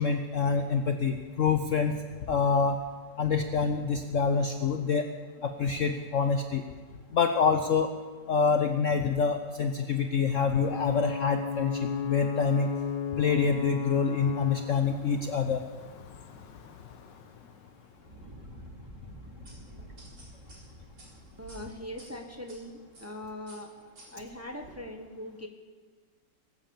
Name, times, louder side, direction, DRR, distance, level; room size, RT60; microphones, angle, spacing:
voice 1, 0.0-2.0 2.3-2.8 3.2-5.1 5.4-6.6 7.1-7.9 8.3-12.7 13.2-15.6, left 5 dB, 55° left, 6 dB, 0.9 m, -26 dB
Ocean / Boat Water vehicle / Alarm, 10.6-18.1, left 7 dB, 80° left, 1.7 m, -36 dB
Fire, 17.9-23.1, equal, 65° right, 5.3 m, -50 dB
sound 1, 19.5-22.6 22.9-23.2 23.5-24.7, right 2 dB, 80° right, 5.1 m, -52 dB
voice 2, 21.4-23.7 24.1-25.5, left 1 dB, 10° right, 3 dB, 1.1 m, -41 dB
20.5 x 9.0 x 7.3 m, 1.4 s
omnidirectional pair, 2.0 m